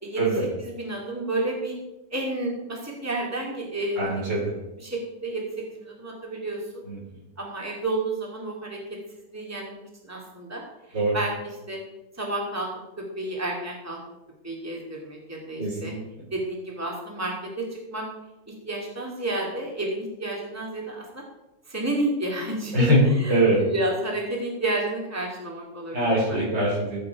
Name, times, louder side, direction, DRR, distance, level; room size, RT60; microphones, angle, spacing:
voice 1, 0.6-1.8 2.1-4.2 4.8-5.4 5.7-6.6 7.4-8.8 9.1-10.6 11.1-11.3 11.7-11.8 12.2-12.7 13.2-14.0 14.4-15.9 16.3-18.1 18.5-21.2 21.7-26.5, right 2 dB, 10° right, -2 dB, 2.7 m, -31 dB
voice 2, 4.0-4.5 6.9-7.0 10.9-11.2 15.6-16.0 22.7-23.0 23.3-23.6 25.9-27.0, right 1 dB, 75° right, -3 dB, 5.4 m, -22 dB
16.5 x 8.6 x 4.9 m, 0.98 s
omnidirectional pair, 1.9 m